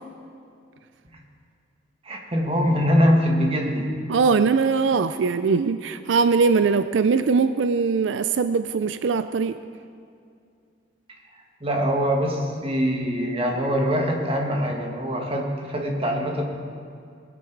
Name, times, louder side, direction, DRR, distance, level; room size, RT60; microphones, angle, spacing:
voice 1, 2.0-3.9 11.6-16.4, equal, 30° right, 1 dB, 1.7 m, -23 dB
voice 2, 4.1-9.6, right 5 dB, 90° right, 11 dB, 0.4 m, -21 dB
19.5 x 10.0 x 4.7 m, 2.4 s
head